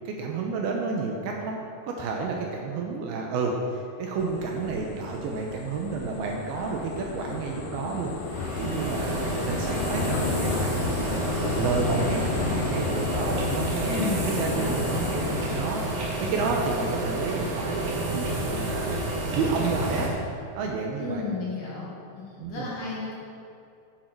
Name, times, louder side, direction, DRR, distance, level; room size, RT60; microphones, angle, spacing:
voice 1, 0.1-1.6 1.9-8.1 8.6-15.2 15.6-20.1 20.5-21.2 22.4-22.7, right 4 dB, 75° right, 0 dB, 2.5 m, -30 dB
sound 1, 4.2-15.8, left 4 dB, 80° left, 2.0 m, -32 dB
sound 2, 8.2-20.1, right 1 dB, 55° right, 2.6 m, -30 dB
voice 2, 13.9-15.0 21.0-21.9 22.1-23.2, left 4 dB, 55° left, -6 dB, 2.7 m, -33 dB
10.0 x 8.4 x 4.6 m, 2.5 s
omnidirectional pair, 5.0 m